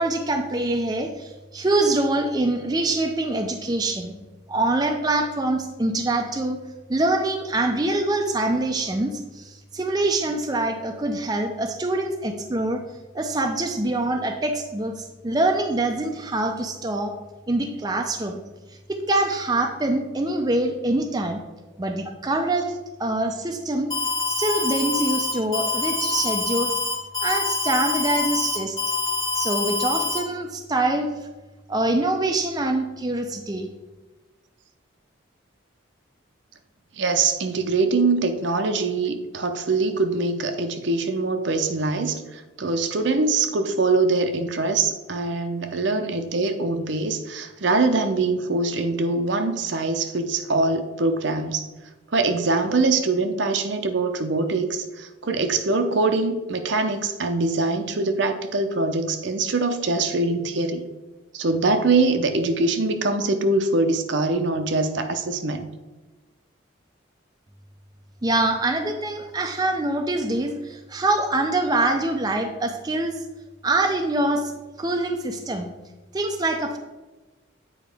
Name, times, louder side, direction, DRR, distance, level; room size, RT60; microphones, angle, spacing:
voice 1, 0.0-4.1 4.5-6.6 6.9-12.8 13.1-17.1 17.5-18.4 18.9-21.4 21.8-23.9 24.3-26.7 27.2-28.8 29.3-31.1 31.7-33.7 68.2-73.2 73.6-74.5 74.8-75.7 76.1-76.8, right 2 dB, 20° right, 4 dB, 0.4 m, -24 dB
Alarm, 23.9-30.2, left 4 dB, 20° left, 1.2 m, -25 dB
voice 2, 37.0-51.7 52.1-60.8 61.3-65.7, right 3 dB, 65° right, 7 dB, 0.7 m, -23 dB
8.4 x 4.8 x 3.4 m, 1.2 s
head